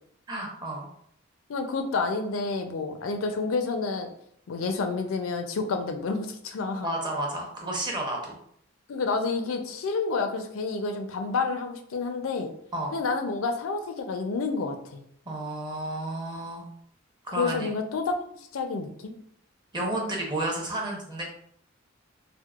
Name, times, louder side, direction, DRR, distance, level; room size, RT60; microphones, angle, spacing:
voice 1, 0.3-0.9 6.8-8.4 12.7-12.9 15.3-16.6 17.2-17.7 19.7-21.2, right 1 dB, 20° right, -1 dB, 0.7 m, -31 dB
voice 2, 1.5-4.1 4.5-6.9 8.9-12.5 12.9-15.0 17.4-18.1 18.5-19.1, left 4 dB, 75° left, 6 dB, 0.4 m, -29 dB
4.4 x 2.0 x 2.3 m, 0.67 s
head